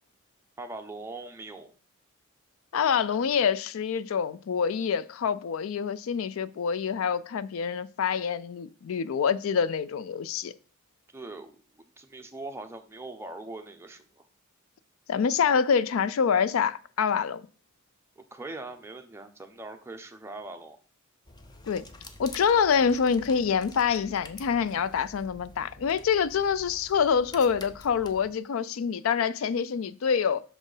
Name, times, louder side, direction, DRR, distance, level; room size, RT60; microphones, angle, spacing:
voice 1, 0.6-1.7 11.1-11.5 12.0-14.3 18.2-20.8, right 2 dB, 10° right, 0.7 m, -41 dB
voice 2, 2.7-10.5 15.1-17.4 21.6-21.8 22.2-30.4, left 6 dB, 70° left, 0.4 m, -26 dB
sound 1, 21.2-28.3, left 2 dB, 20° left, 0.6 m, -48 dB
6.1 x 4.3 x 4.9 m
head